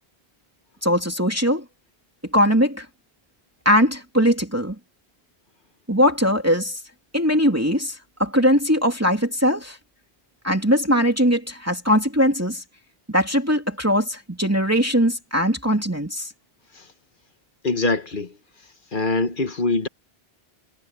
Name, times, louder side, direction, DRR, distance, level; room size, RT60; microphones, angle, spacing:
voice 1, 0.8-1.6 2.3-2.9 3.6-4.7 5.9-6.8 7.1-9.8 10.4-12.6 13.1-16.3, equal, 15° right, 2.9 m, -20 dB
voice 2, 17.6-18.3 18.9-19.9, left 3 dB, 50° left, 1.7 m, -23 dB
omnidirectional pair, 1.1 m